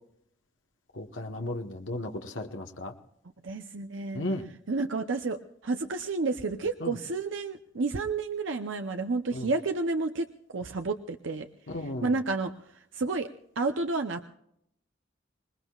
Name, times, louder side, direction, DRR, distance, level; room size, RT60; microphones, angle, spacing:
voice 1, 0.9-2.9 4.1-4.5 6.8-7.0 9.3-9.5 11.7-12.2, left 1 dB, 90° left, 4 dB, 1.2 m, -35 dB
voice 2, 3.4-4.2 4.7-10.3 10.5-11.5 12.0-12.5 12.9-13.3 13.6-14.2, right 3 dB, 85° right, 6 dB, 0.7 m, -30 dB
26.0 x 20.0 x 2.4 m, 0.74 s
head